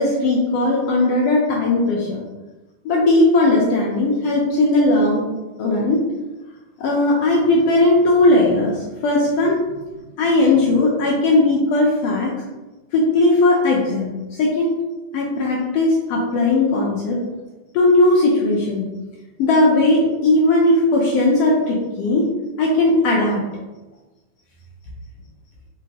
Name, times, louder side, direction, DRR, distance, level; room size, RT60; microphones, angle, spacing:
voice 1, 0.0-2.2 2.8-5.3 5.6-6.0 6.8-9.6 10.2-12.3 12.9-14.7 15.1-17.2 17.7-18.8 19.4-22.2 22.6-23.4, left 2 dB, 80° left, -4 dB, 1.4 m, -17 dB
4.2 x 3.8 x 2.8 m, 1.1 s
omnidirectional pair, 3.6 m